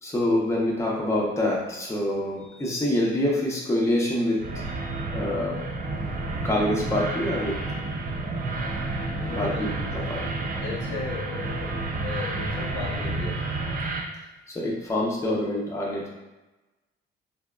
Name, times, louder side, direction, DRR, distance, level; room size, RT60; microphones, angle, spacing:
voice 1, 0.0-5.6 6.3-7.6 9.3-10.2 14.5-16.1, left 1 dB, 15° left, -3 dB, 0.7 m, -26 dB
sound 1, 4.4-14.0, right 2 dB, 45° right, 0.5 m, -30 dB
voice 2, 9.1-9.6 10.2-10.3 10.6-13.5, left 3 dB, 85° left, -2 dB, 0.6 m, -35 dB
2.7 x 2.2 x 2.3 m, 1.1 s
cardioid pair, 90°, 20 cm